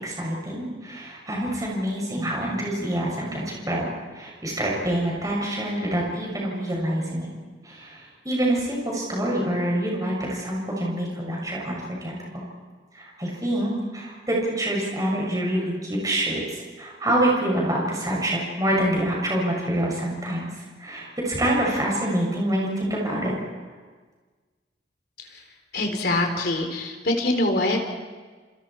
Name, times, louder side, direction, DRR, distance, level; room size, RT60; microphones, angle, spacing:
voice 1, 0.0-3.9 4.1-7.3 7.7-7.9 8.3-12.4 13.0-16.4 16.8-20.5 20.8-23.3, right 1 dB, 20° right, -3 dB, 6.9 m, -26 dB
voice 2, 25.7-27.8, left 2 dB, 55° left, 3 dB, 3.9 m, -24 dB
30.0 x 29.5 x 4.6 m, 1.4 s
head